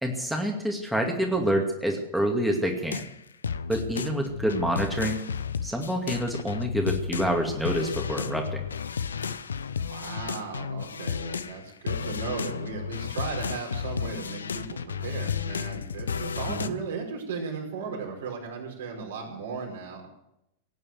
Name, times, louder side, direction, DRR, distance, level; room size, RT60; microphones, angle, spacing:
voice 1, 0.0-3.0 3.7-5.2 5.6-8.7 16.5-16.7, right 1 dB, ahead, 1 dB, 2.4 m, -27 dB
sound 1, 2.8-11.6 11.9-16.7, left 6 dB, 70° left, 0.8 m, -32 dB
voice 2, 9.9-20.1, right 5 dB, 60° right, 1 dB, 5.1 m, -36 dB
18.0 x 9.5 x 7.9 m, 0.80 s
figure-of-eight pair, 90°, 0 cm